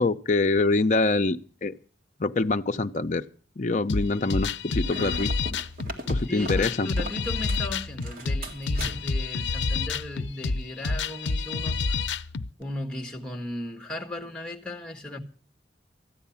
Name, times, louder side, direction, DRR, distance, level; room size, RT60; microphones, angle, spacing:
voice 1, 0.0-1.4 1.6-1.7 2.2-3.2 3.6-5.3 6.1-6.9, left 3 dB, 45° left, 0.6 m, -24 dB
sound 1, 3.9-12.5, left 4 dB, 90° left, 0.6 m, -28 dB
sound 2, 4.8-7.7 8.0-9.3, equal, 50° right, 1.9 m, -38 dB
voice 2, 6.3-12.0 12.6-15.2, left 1 dB, 5° left, 1.5 m, -36 dB
14.0 x 9.4 x 7.1 m
head